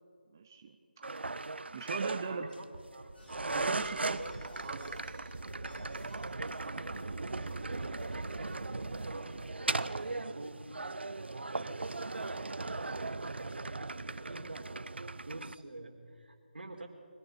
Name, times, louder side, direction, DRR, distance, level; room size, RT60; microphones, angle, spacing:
voice 1, 0.3-1.0 1.7-2.5 3.5-4.2 4.6-4.8, right 5 dB, 20° right, 6 dB, 0.6 m, -39 dB
sound 1, 1.0-15.5, right 3 dB, 90° right, 0.7 m, -38 dB
voice 2, 2.2-2.7 2.9-3.1 3.9-4.4 6.3-10.8 11.1-16.9, right 2 dB, 70° right, 4 dB, 3.8 m, -47 dB
sound 2, 3.1-9.5, left 1 dB, 70° left, 5.0 m, -52 dB
23.5 x 17.0 x 7.2 m, 2.2 s
figure-of-eight pair, 175°, 6 cm